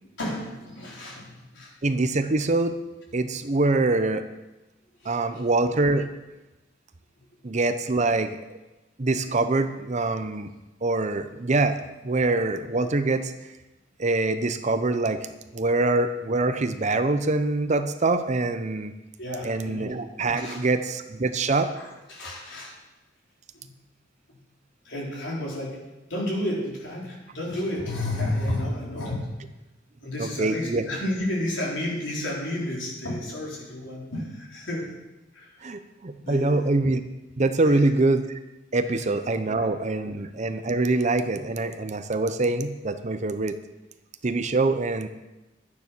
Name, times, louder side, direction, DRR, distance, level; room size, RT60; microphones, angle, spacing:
voice 1, 0.2-1.7 5.0-5.4 19.2-19.9 20.4-20.6 21.5-22.7 23.5-23.7 24.3-24.4 24.8-25.8 26.1-29.2 30.0-34.9 35.3-35.6 36.2-36.6 37.6-37.8, left 1 dB, 70° left, -4 dB, 4.5 m, -31 dB
voice 2, 1.8-2.8 3.1-4.3 5.0-6.1 7.4-8.4 9.0-10.5 10.8-13.3 14.0-18.9 19.4-21.7 30.2-30.8 35.6-37.0 37.4-38.4 38.7-43.6 44.2-45.1, right 2 dB, 35° right, 10 dB, 0.7 m, -24 dB
12.0 x 9.8 x 6.1 m, 1.1 s
head